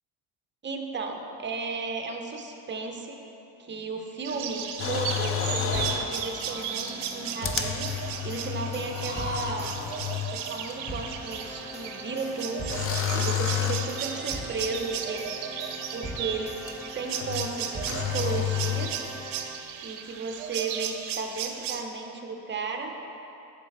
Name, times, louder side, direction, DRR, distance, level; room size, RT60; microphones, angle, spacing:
voice 1, 0.6-3.2 3.6-9.7 10.3-15.3 15.9-16.6 16.9-18.9 19.8-22.9, right 4 dB, 25° right, 3 dB, 0.6 m, -34 dB
sound 1, 4.2-21.8, right 8 dB, 90° right, 0.6 m, -35 dB
sound 2, 4.8-6.2 6.9-7.0 7.4-10.4 10.7-10.8 12.7-14.0 16.7-16.8 17.2-17.5 17.9-18.9, left 10 dB, 30° left, 0.4 m, -30 dB
sound 3, 5.7-19.8, equal, 10° left, 1.3 m, -41 dB
6.7 x 4.5 x 4.1 m, 2.8 s
supercardioid pair, 80°, 49 cm